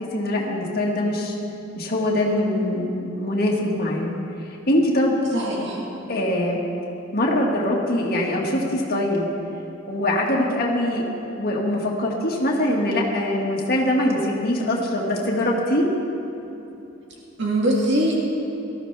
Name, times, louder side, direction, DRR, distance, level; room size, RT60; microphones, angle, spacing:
voice 1, 0.1-1.3 1.8-4.1 4.7-5.2 6.1-6.6 7.1-9.3 9.9-11.0 11.3-15.9, left 1 dB, 50° left, -2 dB, 1.9 m, -23 dB
voice 2, 5.3-5.8 17.4-18.2, right 1 dB, 65° right, -3 dB, 2.1 m, -22 dB
19.0 x 13.5 x 3.4 m, 2.9 s
head